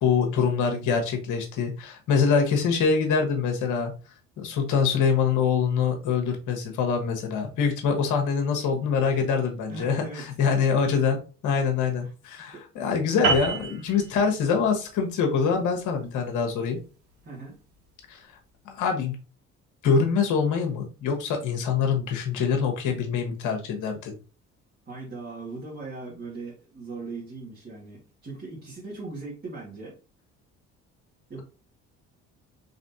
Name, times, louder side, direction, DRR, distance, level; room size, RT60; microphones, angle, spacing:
voice 1, 0.0-3.9 4.4-16.8 18.1-18.3 18.6-19.2 19.8-24.1, left 6 dB, 70° left, 3 dB, 1.3 m, -24 dB
voice 2, 9.7-11.1 12.0-12.1 12.5-12.7 17.2-17.6 24.9-30.0 31.3-31.4, right 3 dB, 35° right, -5 dB, 2.0 m, -39 dB
sound 1, 13.2-18.0, right 4 dB, 80° right, 1.6 m, -31 dB
4.1 x 3.6 x 2.7 m, 0.35 s
supercardioid pair, 75°, 31 cm